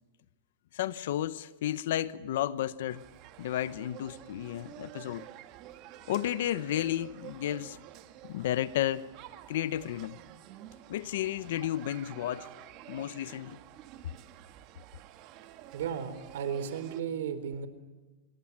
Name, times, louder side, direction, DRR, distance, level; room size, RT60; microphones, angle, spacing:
voice 1, 0.7-3.0 3.4-5.3 6.1-7.8 8.2-9.0 9.5-10.2 10.9-12.5 12.9-13.6, left 12 dB, 65° left, 0.9 m, -32 dB
sound 1, 2.9-17.0, right 13 dB, 40° right, 1.8 m, -50 dB
voice 2, 15.7-17.7, right 8 dB, 75° right, 4.0 m, -34 dB
27.0 x 22.5 x 7.4 m
supercardioid pair, 160°, 0 cm